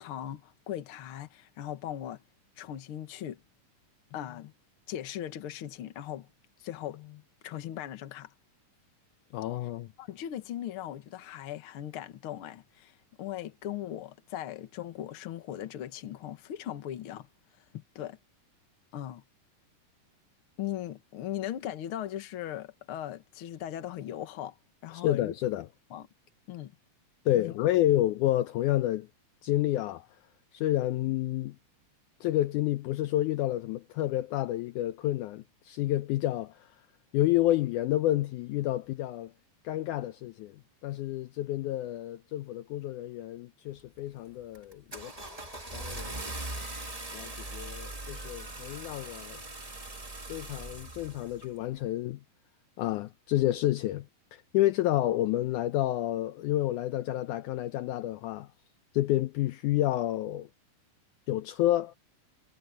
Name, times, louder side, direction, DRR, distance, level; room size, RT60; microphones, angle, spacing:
voice 1, 0.0-2.2 2.6-3.4 4.1-4.5 4.9-6.3 6.6-8.3 10.0-17.3 17.7-18.2 18.9-19.2 20.6-24.6 24.8-25.3 25.9-26.1 26.5-26.7 27.3-27.7, left 11 dB, 55° left, 1.7 m, -39 dB
voice 2, 9.3-9.9 24.9-25.7 27.3-29.1 29.4-30.1 30.5-31.6 32.2-36.7 37.1-39.3 39.6-45.4 45.7-46.4 47.1-49.4 50.3-52.2 52.8-54.1 54.3-58.5 58.9-60.5 61.3-62.0, left 14 dB, 75° left, 2.0 m, -29 dB
Car / Engine starting, 43.8-44.1 44.5-51.5, right 2 dB, 20° right, 1.0 m, -41 dB
omnidirectional pair, 3.9 m